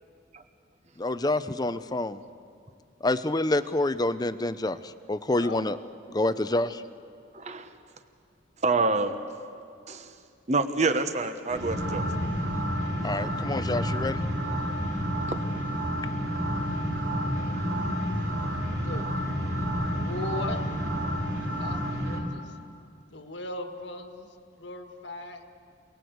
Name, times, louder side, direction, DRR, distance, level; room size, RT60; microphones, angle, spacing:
voice 1, 1.0-2.2 3.0-4.8 5.1-5.8 6.1-6.8 13.0-14.2, left 2 dB, 20° left, 13 dB, 0.6 m, -27 dB
voice 2, 5.3-5.6 18.8-19.1 19.9-20.7 21.6-22.5 23.1-24.3 24.6-25.4, left 2 dB, 70° left, 6 dB, 1.7 m, -38 dB
voice 3, 7.3-7.7 8.6-9.2 9.9-10.1 10.5-12.0, right 3 dB, 40° right, 9 dB, 1.2 m, -26 dB
sound 1, 11.5-22.2, equal, 85° right, 4.3 m, -29 dB
27.5 x 19.5 x 8.0 m, 2.4 s
head